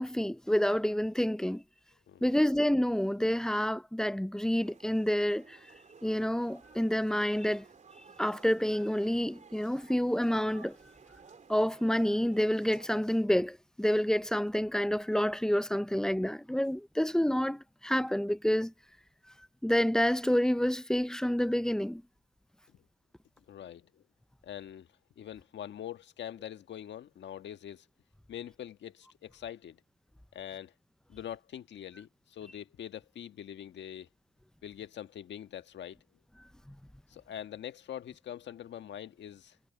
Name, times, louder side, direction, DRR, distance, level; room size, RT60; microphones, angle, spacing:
voice 1, 0.0-1.6 2.2-5.6 6.0-7.6 8.2-10.8 11.5-18.7 19.6-22.0 36.7-36.8, equal, 5° left, 0.5 m, -28 dB
voice 2, 2.1-2.4 23.5-24.0 24.4-24.9 25.2-27.8 28.3-29.8 30.3-30.7 31.1-34.1 34.6-36.0 37.1-39.6, left 10 dB, 65° left, 1.6 m, -43 dB
sound 1, 4.6-13.0, right 5 dB, 40° right, 3.6 m, -56 dB
cardioid pair, 90°, 20 cm